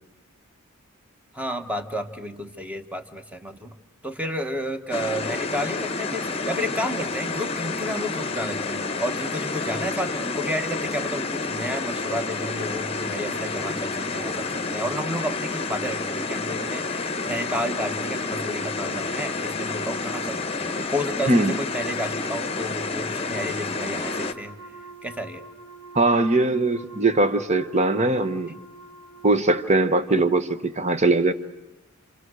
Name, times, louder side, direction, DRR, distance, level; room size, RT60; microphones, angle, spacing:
voice 1, 1.3-3.7 4.0-24.6 25.0-25.4, equal, 5° right, 7 dB, 1.3 m, -31 dB
sound 1, 4.9-24.3, left 3 dB, 25° left, 1.0 m, -29 dB
Wind instrument woodwind instrument, 24.0-29.8, right 3 dB, 75° right, 4.6 m, -46 dB
voice 2, 25.9-28.5 29.2-31.3, right 2 dB, 30° right, 11 dB, 1.2 m, -21 dB
29.5 x 26.5 x 6.4 m, 0.95 s
head